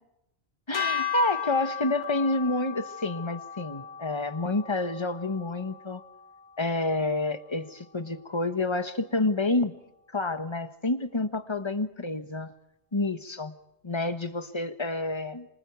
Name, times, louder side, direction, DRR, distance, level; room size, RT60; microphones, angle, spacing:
sound 1, 0.7-7.1, left 8 dB, 75° left, 2.1 m, -36 dB
voice 1, 0.7-6.0 6.6-9.7 10.1-12.5 12.9-13.5 13.8-15.5, left 2 dB, 25° left, 10 dB, 1.3 m, -28 dB
27.0 x 25.0 x 4.6 m, 0.86 s
omnidirectional pair, 1.1 m